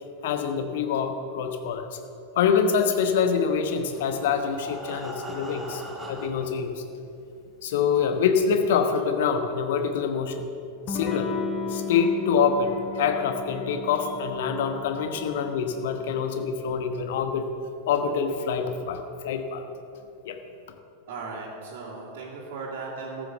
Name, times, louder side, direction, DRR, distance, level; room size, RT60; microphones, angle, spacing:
voice 1, 0.2-2.0 2.4-5.8 6.1-6.8 7.6-10.5 10.9-11.3 11.7-17.5 17.9-19.6 20.2-20.4, left 6 dB, 55° left, 7 dB, 1.1 m, -25 dB
Breathing, 3.7-6.6 7.4-7.5 7.9-8.0 8.4-8.5, right 1 dB, 10° right, 1.4 m, -41 dB
Electric guitar / Strum, 10.9-16.2, left 4 dB, 30° left, 1.0 m, -34 dB
voice 2, 21.1-23.3, right 4 dB, 50° right, -8 dB, 2.5 m, -37 dB
14.0 x 6.3 x 6.8 m, 2.6 s
figure-of-eight pair, 90°, 0 cm